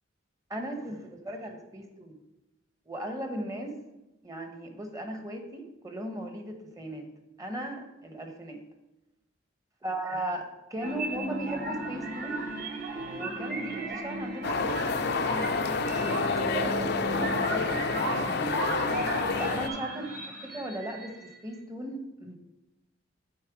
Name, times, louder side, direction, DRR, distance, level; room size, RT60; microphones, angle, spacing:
voice 1, 0.5-2.2 2.9-3.8 4.2-7.1 7.4-8.6 9.8-12.4 13.0-15.5 16.6-18.6 19.4-22.4, right 1 dB, 20° right, 5 dB, 1.0 m, -37 dB
sound 1, 10.8-21.4, right 2 dB, 50° right, 1.3 m, -35 dB
sound 2, 14.4-19.7, left 4 dB, 60° left, 0.6 m, -29 dB
8.7 x 4.2 x 6.0 m, 0.97 s
head